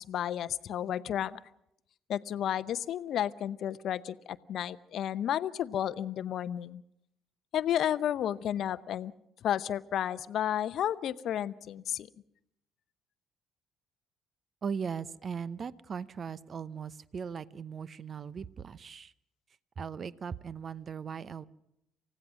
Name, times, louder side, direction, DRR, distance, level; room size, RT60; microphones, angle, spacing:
voice 1, 0.0-1.4 2.1-6.8 7.5-9.1 9.4-12.1, left 10 dB, 60° left, 16 dB, 0.7 m, -32 dB
voice 2, 14.6-19.1 19.8-21.4, right 6 dB, 45° right, 18 dB, 0.8 m, -38 dB
28.0 x 16.0 x 6.2 m, 0.79 s
hypercardioid pair, 50°, 0 cm